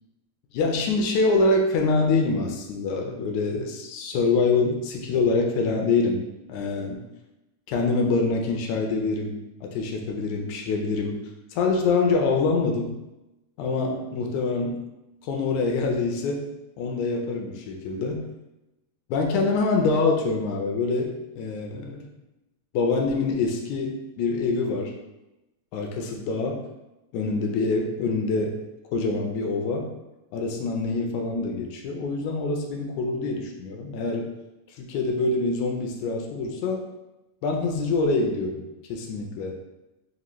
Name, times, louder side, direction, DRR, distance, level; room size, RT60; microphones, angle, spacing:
voice 1, 0.5-6.2 6.5-7.0 7.7-11.2 11.5-12.9 13.6-14.8 15.2-16.5 16.8-18.3 19.1-22.1 22.7-24.9 25.7-26.6 27.1-28.6 28.9-29.9 30.3-34.3 34.8-36.8 37.4-39.6, left 3 dB, 80° left, 1 dB, 1.9 m, -25 dB
5.1 x 2.5 x 3.0 m, 0.97 s
omnidirectional pair, 3.4 m